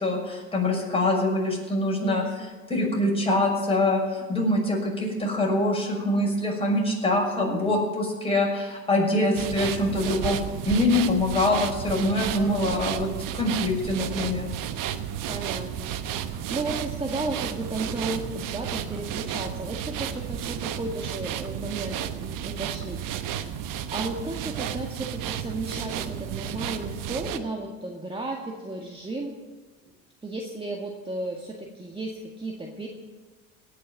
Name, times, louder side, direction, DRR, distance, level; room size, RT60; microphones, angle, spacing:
voice 1, 0.0-10.4 10.6-13.1 13.3-14.5, left 1 dB, 15° left, -2 dB, 6.2 m, -24 dB
voice 2, 2.0-2.5 7.4-7.8 12.4-12.7 15.3-29.4 30.2-32.9, right 2 dB, 15° right, 0 dB, 1.9 m, -34 dB
sound 1, 9.3-27.4, right 10 dB, 50° right, 1.2 m, -32 dB
18.0 x 6.8 x 9.1 m, 1.3 s
hypercardioid pair, 75°, 40 cm